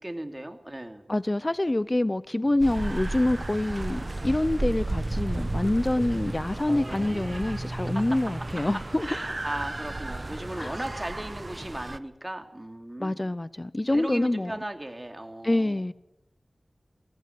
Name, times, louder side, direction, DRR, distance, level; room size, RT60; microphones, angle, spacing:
voice 1, 0.0-1.1 6.7-7.4 7.9-8.0 8.6-8.7 9.0-13.3 13.9-15.8, right 1 dB, 20° right, 2.8 m, -37 dB
voice 2, 1.1-9.1 10.6-10.7 13.0-14.6 15.4-15.9, left 1 dB, 30° left, 0.7 m, -26 dB
sound 1, 2.6-12.0, right 2 dB, 40° right, 1.0 m, -33 dB
22.0 x 15.5 x 9.4 m
wide cardioid pair, 45°, 0 cm